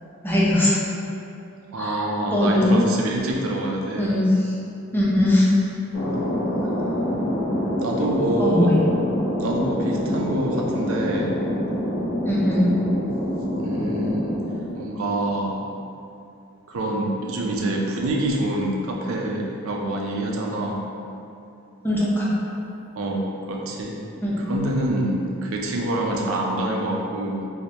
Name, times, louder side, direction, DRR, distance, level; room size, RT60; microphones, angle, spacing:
voice 1, 0.2-0.8 1.8-2.0 2.3-2.7 4.0-4.2 4.9-5.5 8.4-8.8 12.3-12.7 21.8-22.3 24.2-24.4, left 1 dB, 10° left, -7 dB, 0.6 m, -20 dB
voice 2, 1.7-4.1 7.8-8.8 9.4-11.4 13.6-14.4 14.7-15.7 16.7-20.8 23.0-24.0 24.4-27.5, right 1 dB, 80° right, -1 dB, 0.5 m, -26 dB
Thunder, 5.9-15.2, left 1 dB, 60° left, 0.8 m, -26 dB
4.5 x 2.1 x 2.8 m, 2.6 s
head